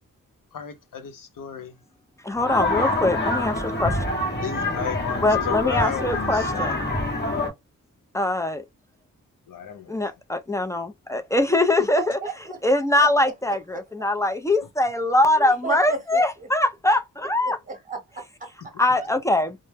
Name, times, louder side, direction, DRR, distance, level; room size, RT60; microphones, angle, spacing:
voice 1, 0.5-1.7 4.4-7.1 9.5-10.0, left 7 dB, 75° left, 0.7 m, -33 dB
voice 2, 2.2-4.0 5.2-6.8 8.1-8.6 9.9-12.2 12.6-17.6 18.8-19.6, left 2 dB, 10° left, 0.4 m, -22 dB
sound 1, 2.3-7.5, left 2 dB, 30° left, 0.8 m, -26 dB
voice 3, 11.8-12.6 13.0-13.8 15.4-16.2 17.4-19.1, right 4 dB, 25° right, 1.0 m, -34 dB
2.1 x 2.0 x 3.2 m
wide cardioid pair, 105°, 33 cm